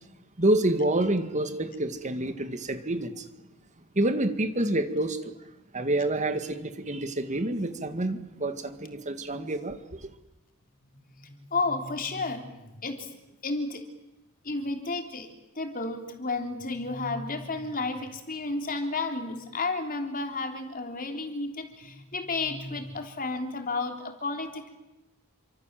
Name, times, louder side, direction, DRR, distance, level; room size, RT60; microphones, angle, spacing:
voice 1, 0.4-3.3 4.0-5.3 5.7-10.1, right 1 dB, 35° right, 1.9 m, -28 dB
voice 2, 10.8-13.1 13.4-13.9 14.4-15.3 15.6-24.7, left 3 dB, 40° left, 3.5 m, -32 dB
28.0 x 25.5 x 7.5 m
head